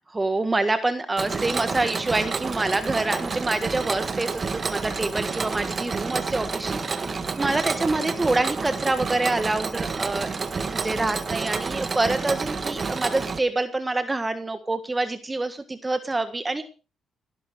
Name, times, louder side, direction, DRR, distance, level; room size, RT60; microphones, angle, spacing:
voice 1, 0.1-10.3 10.7-16.6, right 2 dB, 20° right, 9 dB, 1.5 m, -26 dB
Mechanisms, 1.2-13.4, right 4 dB, 35° right, 1.8 m, -29 dB
17.5 x 11.0 x 5.0 m, 0.34 s
cardioid pair, 90°, 0 cm